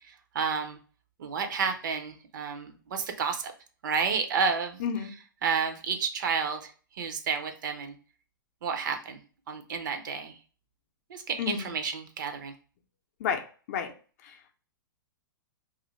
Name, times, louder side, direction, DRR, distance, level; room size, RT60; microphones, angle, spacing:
voice 1, 0.1-0.8 1.2-3.5 3.8-4.8 5.4-8.0 8.6-9.2 9.5-10.3 11.1-12.5, right 5 dB, 60° right, 7 dB, 0.6 m, -31 dB
voice 2, 4.8-5.1 11.4-11.7 13.2-13.9 14.2-14.4, left 7 dB, 50° left, 5 dB, 0.5 m, -31 dB
2.5 x 2.4 x 3.0 m, 0.38 s
figure-of-eight pair, 115°, 12 cm